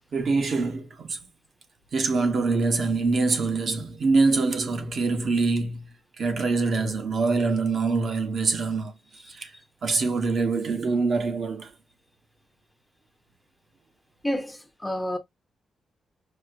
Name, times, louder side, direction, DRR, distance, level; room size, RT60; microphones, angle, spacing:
voice 1, 0.1-1.2 1.9-5.9 6.2-8.9 9.3-9.5 9.8-11.7, right 3 dB, 50° right, 0.8 m, -24 dB
voice 2, 14.2-15.2, equal, 5° left, 0.6 m, -29 dB
4.9 x 2.0 x 2.4 m
wide cardioid pair, 140°, 0 cm